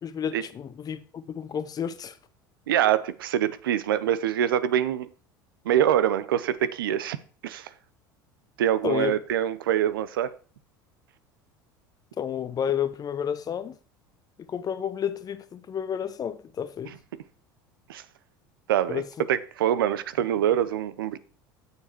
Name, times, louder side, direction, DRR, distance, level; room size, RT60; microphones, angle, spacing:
voice 1, 0.0-2.2 8.8-9.2 12.2-13.8 14.4-16.9 18.9-19.1, left 8 dB, 35° left, 0.7 m, -31 dB
voice 2, 2.7-5.1 5.6-7.2 7.4-7.7 8.6-10.3 17.9-18.0 18.7-19.0 19.3-21.2, right 10 dB, 80° right, 0.6 m, -24 dB
6.9 x 6.7 x 4.4 m
hypercardioid pair, 80°, 11 cm